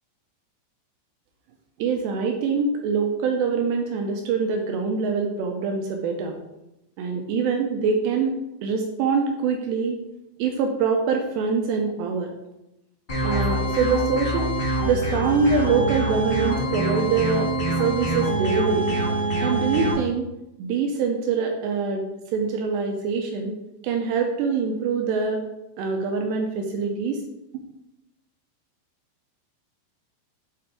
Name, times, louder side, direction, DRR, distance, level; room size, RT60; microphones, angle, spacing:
voice 1, 1.8-6.4 7.0-8.4 8.6-10.0 10.4-12.3 13.2-14.5 14.8-18.9 19.4-20.3 20.6-22.1 22.3-23.6 23.8-25.5 25.8-27.2, right 5 dB, 85° right, 2 dB, 2.4 m, -24 dB
sound 1, 13.1-19.9, right 1 dB, 60° left, 0.5 m, -25 dB
8.7 x 3.8 x 3.4 m, 0.90 s
omnidirectional pair, 5.5 m